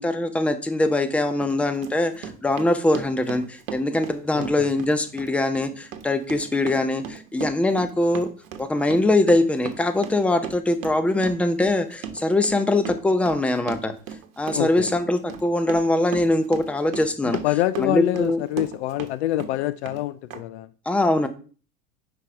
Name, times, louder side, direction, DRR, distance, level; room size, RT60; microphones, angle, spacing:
voice 1, 0.0-8.3 8.6-13.9 14.4-17.4 17.8-18.4 20.9-21.3, left 2 dB, 5° left, 0.6 m, -22 dB
Run, 0.8-0.9 1.4-19.1 19.4-20.0 20.3-20.4, right 8 dB, 65° right, 1.1 m, -37 dB
voice 2, 4.3-4.7 14.5-14.9 17.2-20.7, left 15 dB, 50° left, 0.4 m, -26 dB
5.7 x 5.1 x 4.7 m
figure-of-eight pair, 85°, 44 cm